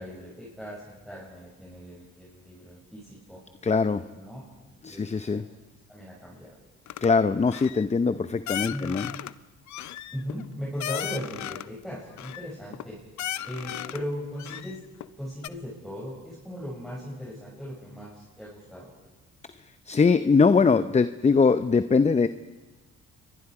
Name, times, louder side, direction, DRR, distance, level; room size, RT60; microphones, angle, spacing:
voice 1, 0.0-3.4 4.1-4.4 4.9-5.4 5.9-6.5 8.7-9.0 10.1-13.0 13.4-14.8 15.2-18.9, equal, ahead, -6 dB, 6.6 m, -38 dB
voice 2, 3.6-4.0 4.8-5.4 7.0-9.1 19.9-22.3, left 5 dB, 20° left, 12 dB, 0.7 m, -22 dB
sound 1, 6.9-7.1 7.5-7.9 8.5-9.3 9.7-11.7 12.2-12.8 13.2-14.0 14.4-15.1 15.4-15.5, left 12 dB, 70° left, 0.7 m, -35 dB
28.5 x 23.5 x 4.9 m, 1.2 s
cardioid pair, 90°, 30 cm